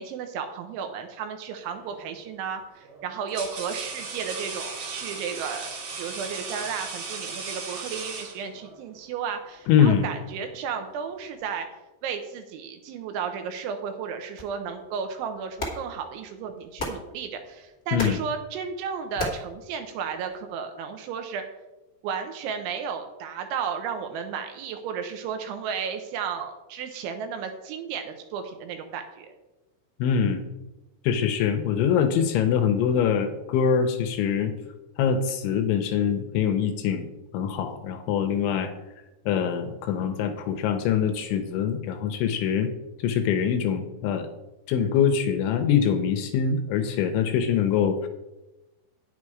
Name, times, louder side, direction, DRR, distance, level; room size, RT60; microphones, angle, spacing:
voice 1, 0.0-5.7 6.0-11.7 12.0-21.4 22.0-29.3, right 6 dB, 80° right, 6 dB, 3.1 m, -33 dB
sound 1, 1.7-2.0 2.8-8.8, right 4 dB, 60° right, 1.8 m, -37 dB
voice 2, 9.7-10.1 17.9-18.2 30.0-30.4 31.0-34.5 35.0-37.1 37.3-38.7 39.3-42.7 43.0-44.3 44.7-48.1, left 7 dB, 80° left, 6 dB, 3.0 m, -24 dB
sound 2, 14.4-20.4, left 2 dB, 55° left, 0.7 m, -38 dB
9.9 x 8.4 x 4.8 m, 1.0 s
omnidirectional pair, 5.8 m